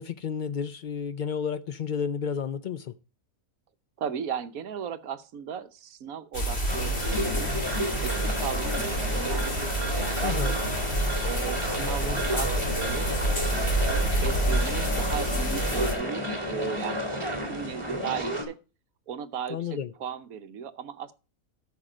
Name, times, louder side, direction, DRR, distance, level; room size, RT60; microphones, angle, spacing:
voice 1, 0.0-2.9 10.2-10.6 19.5-19.9, left 7 dB, 85° left, 0.4 m, -31 dB
voice 2, 4.0-7.5 8.0-10.6 11.2-13.1 13.5-17.1 17.4-18.6 19.1-21.1, right 8 dB, 70° right, 1.3 m, -36 dB
sound 1, 6.3-15.9, equal, 45° left, 2.8 m, -28 dB
sound 2, 6.7-18.4, equal, 20° right, 2.7 m, -31 dB
13.0 x 5.9 x 4.9 m
omnidirectional pair, 1.5 m